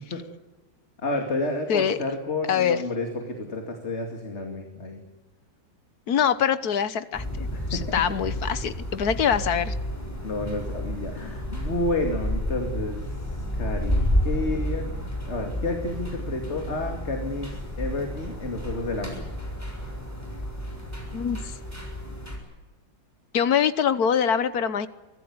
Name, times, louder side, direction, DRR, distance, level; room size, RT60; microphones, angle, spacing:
voice 1, 1.0-5.0 7.5-7.8 10.2-13.2 13.6-14.9 15.2-17.5 17.8-19.2, left 2 dB, 35° left, 4 dB, 2.6 m, -30 dB
voice 2, 2.5-2.8 6.1-9.7 21.1-21.4 23.3-24.9, left 8 dB, 60° left, 14 dB, 1.4 m, -24 dB
sound 1, 7.1-22.4, left 1 dB, 10° left, 6.6 m, -31 dB
24.5 x 17.0 x 9.5 m, 1.2 s
omnidirectional pair, 2.0 m